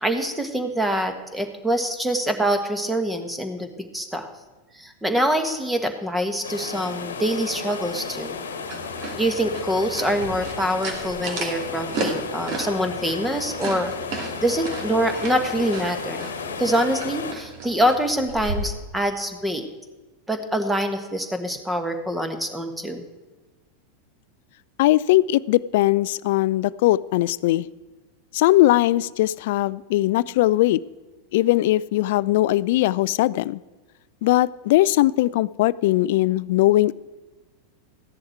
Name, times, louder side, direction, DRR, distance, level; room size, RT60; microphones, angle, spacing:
voice 1, 0.0-4.3 4.8-8.4 9.1-13.9 14.4-16.3 16.6-19.6 20.3-23.0, equal, 5° right, 8 dB, 1.5 m, -25 dB
sound 1, 6.4-17.3, left 5 dB, 75° left, 1.2 m, -33 dB
sound 2, 8.6-18.7, right 3 dB, 45° right, 2.4 m, -34 dB
voice 2, 24.8-27.7 28.3-30.8 31.3-33.6 34.2-36.9, left 16 dB, 60° left, 20 dB, 0.3 m, -20 dB
14.5 x 10.5 x 4.6 m, 1.2 s
figure-of-eight pair, 90°, 0 cm